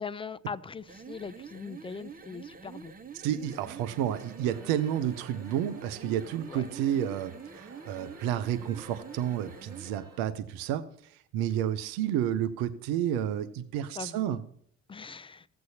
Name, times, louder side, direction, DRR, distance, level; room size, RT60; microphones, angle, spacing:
voice 1, 0.0-2.9 6.5-6.6 13.9-14.4 14.9-15.5, left 5 dB, 15° left, 0.5 m, -40 dB
sound 1, 0.8-10.0, right 6 dB, 25° right, 0.8 m, -47 dB
voice 2, 3.2-10.8 11.3-14.4, right 10 dB, 70° right, 0.8 m, -30 dB
sound 2, 3.5-10.2, right 2 dB, 45° right, 4.5 m, -53 dB
15.5 x 7.7 x 2.8 m
hypercardioid pair, 50°, 38 cm